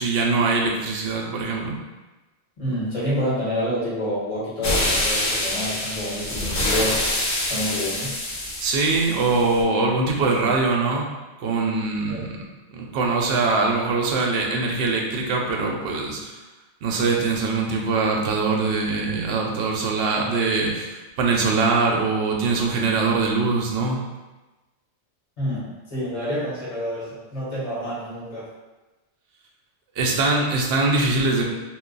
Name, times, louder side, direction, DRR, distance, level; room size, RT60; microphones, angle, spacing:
voice 1, 0.0-1.7 8.6-11.1 11.4-12.4 12.7-16.4 16.8-24.0 30.0-31.4, right 3 dB, 65° right, -1 dB, 0.8 m, -22 dB
voice 2, 2.6-7.0 7.4-8.2 12.1-12.2 25.4-28.5, equal, 30° left, -9 dB, 1.2 m, -28 dB
sound 1, 4.6-9.6, left 1 dB, 55° left, 0.8 m, -26 dB
2.3 x 2.2 x 3.8 m, 1.1 s
omnidirectional pair, 1.2 m